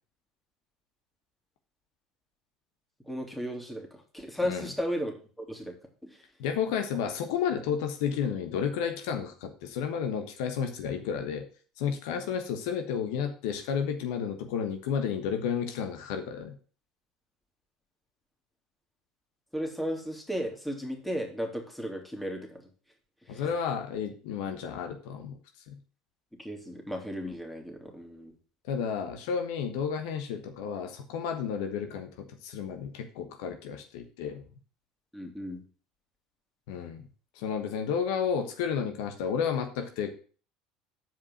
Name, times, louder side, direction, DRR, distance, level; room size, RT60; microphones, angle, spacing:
voice 1, 3.1-5.7 6.0-6.1 6.9-7.0 19.5-22.6 23.3-23.4 26.4-28.3 35.1-35.6, equal, 5° left, 2 dB, 2.7 m, -35 dB
voice 2, 6.4-11.5 11.8-16.6 23.3-25.4 25.7-25.8 28.6-34.4 36.7-37.1 37.3-40.1, left 7 dB, 75° left, 6 dB, 1.2 m, -32 dB
7.6 x 5.0 x 7.3 m, 0.40 s
hypercardioid pair, 80°, 2 cm